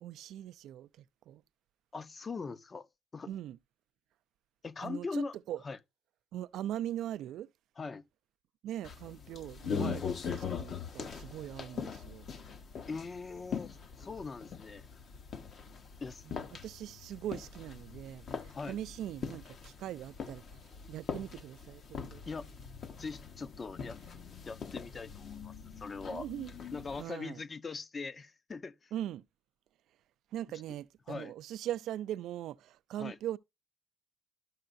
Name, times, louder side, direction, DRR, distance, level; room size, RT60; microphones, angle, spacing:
voice 1, 0.0-1.4 3.3-3.6 4.8-5.6 6.3-7.5 8.6-10.0 10.3-12.3 16.2-22.2 26.1-26.5 27.0-27.4 28.9-29.3 30.3-33.4, right 12 dB, 80° right, 0.3 m, -41 dB
voice 2, 1.9-2.9 3.1-3.3 4.6-5.3 5.6-5.8 7.8-8.0 9.7-10.0 12.9-14.8 16.0-16.2 18.5-18.8 22.3-22.5 23.0-24.0 24.5-26.3 26.7-28.9 31.1-31.3 33.0-33.2, left 4 dB, 35° left, 0.6 m, -41 dB
sound 1, 8.8-27.0, left 6 dB, 60° left, 0.9 m, -42 dB
12.5 x 5.5 x 2.5 m
cardioid pair, 90°, 0 cm